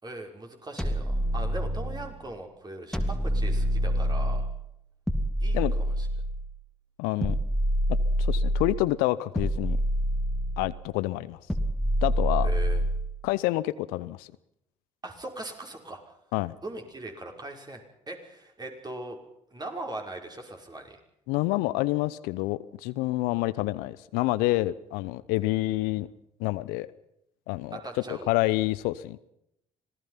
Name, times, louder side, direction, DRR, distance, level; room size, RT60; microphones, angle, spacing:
voice 1, 0.0-4.5 5.4-6.1 12.4-12.8 15.0-16.1 16.6-19.2 19.5-21.0 27.7-28.3, right 2 dB, 25° right, 3 dB, 5.7 m, -40 dB
sound 1, 0.8-2.1 2.9-4.6 5.1-6.5 7.2-8.8 9.4-10.8 11.5-13.1, equal, 5° left, 3.0 m, -26 dB
voice 2, 7.0-7.4 8.2-9.8 10.6-11.4 12.0-12.5 13.2-14.3 16.3-16.5 21.3-26.1 26.4-26.9 27.5-27.8 28.1-29.2, left 18 dB, 70° left, 17 dB, 0.8 m, -28 dB
26.0 x 18.0 x 5.8 m, 0.78 s
hypercardioid pair, 50°, 16 cm